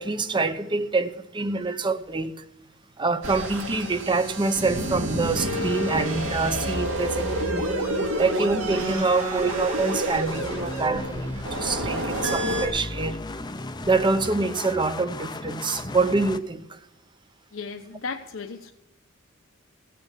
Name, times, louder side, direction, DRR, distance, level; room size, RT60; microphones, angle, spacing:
voice 1, 0.0-2.3 3.0-7.7 8.2-13.2 13.8-16.8, right 3 dB, 25° right, 0.7 m, -26 dB
sound 1, 3.2-12.7, right 1 dB, 70° right, 2.4 m, -29 dB
sound 2, 10.3-16.4, left 2 dB, 20° left, 0.6 m, -35 dB
voice 2, 17.5-18.7, left 4 dB, 70° left, 1.0 m, -35 dB
17.0 x 6.9 x 8.3 m
head